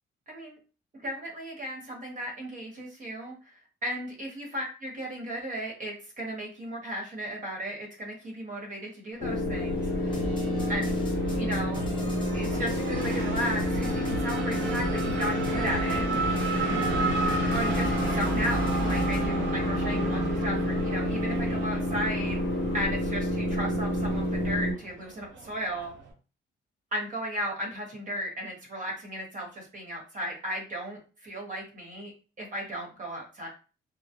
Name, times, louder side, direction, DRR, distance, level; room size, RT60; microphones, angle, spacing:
voice 1, 0.3-0.6 1.0-10.1 10.7-10.8 11.4-11.8 12.3-16.1 17.5-22.4 22.7-25.9 26.9-32.1 32.4-33.5, equal, 40° right, -1 dB, 1.1 m, -35 dB
Race car auto racing / Accelerating revving vroom, 9.1-26.1, right 3 dB, 70° right, 0.7 m, -35 dB
sound 1, 9.2-24.7, left 1 dB, 60° left, 0.6 m, -29 dB
sound 2, 10.1-19.3, equal, 25° left, 1.1 m, -38 dB
2.2 x 2.1 x 2.8 m, 0.35 s
cardioid pair, 90°, 20 cm